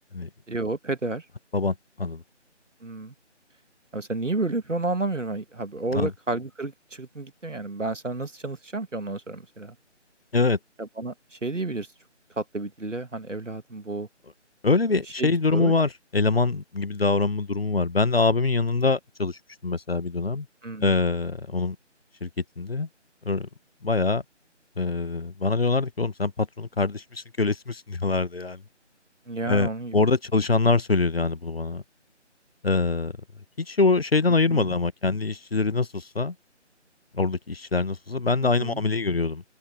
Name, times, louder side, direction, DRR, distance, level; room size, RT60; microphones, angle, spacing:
voice 1, 0.5-1.2 2.8-3.1 3.9-9.8 10.8-11.9 12.4-14.1 15.2-15.7 20.6-20.9 29.3-30.0 34.5-34.7 38.4-38.8, right 2 dB, 80° right, 2.1 m, -31 dB
voice 2, 1.5-2.2 5.9-6.1 10.3-10.6 14.6-20.5 20.8-21.8 22.2-22.3 22.6-22.9 23.2-23.5 23.8-24.2 24.8-28.6 29.5-31.8 32.6-33.1 33.6-36.3 37.1-39.4, left 3 dB, 55° left, 1.3 m, -24 dB
figure-of-eight pair, 160°, 36 cm